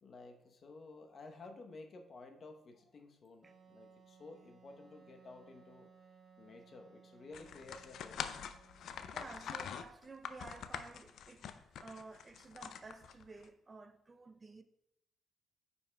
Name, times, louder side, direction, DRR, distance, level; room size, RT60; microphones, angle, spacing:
voice 1, 0.0-5.9 6.4-8.3, left 3 dB, 50° left, 0.8 m, -53 dB
Wind instrument woodwind instrument, 3.4-9.9, right 5 dB, 50° right, 2.5 m, -63 dB
sound 1, 7.3-13.5, left 8 dB, 70° left, 0.4 m, -45 dB
voice 2, 8.8-14.6, right 3 dB, 35° right, 0.5 m, -53 dB
9.2 x 5.5 x 2.2 m
supercardioid pair, 70°, 0 cm